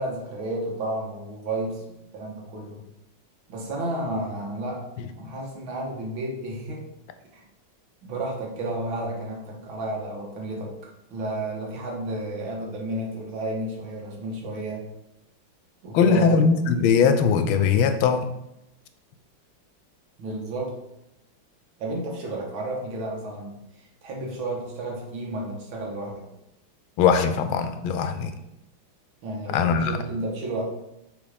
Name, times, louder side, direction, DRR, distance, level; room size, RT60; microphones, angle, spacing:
voice 1, 0.0-1.8 2.1-2.9 3.5-4.9 5.2-6.9 7.3-7.4 8.0-10.8 11.1-14.9 15.8-16.4 20.2-20.7 21.8-23.6 24.0-26.3 29.2-30.6, right 1 dB, 75° right, -1 dB, 2.1 m, -31 dB
voice 2, 15.9-18.3 27.0-28.3 29.5-29.9, left 6 dB, 85° left, 9 dB, 1.4 m, -20 dB
6.2 x 3.3 x 5.0 m, 0.87 s
omnidirectional pair, 2.3 m